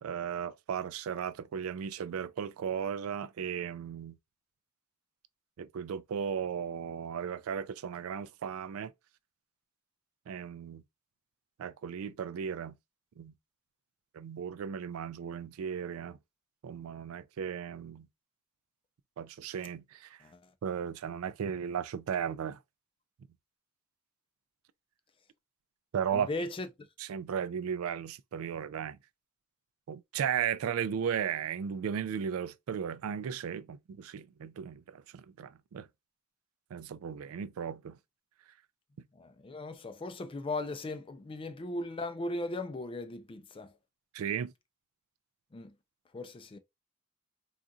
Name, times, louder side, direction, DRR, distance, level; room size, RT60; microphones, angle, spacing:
voice 1, 0.0-4.2 5.6-8.9 10.3-10.8 11.6-12.8 13.2-13.3 14.1-16.2 16.6-18.1 19.2-20.2 20.6-22.6 25.9-26.3 27.0-29.0 29.9-35.9 36.7-38.0 44.1-44.5, right 8 dB, 85° right, 0.3 m, -35 dB
voice 2, 26.1-26.7 39.2-43.7 45.5-45.7 46.1-46.6, left 2 dB, 25° left, 0.4 m, -37 dB
3.9 x 2.4 x 2.3 m
head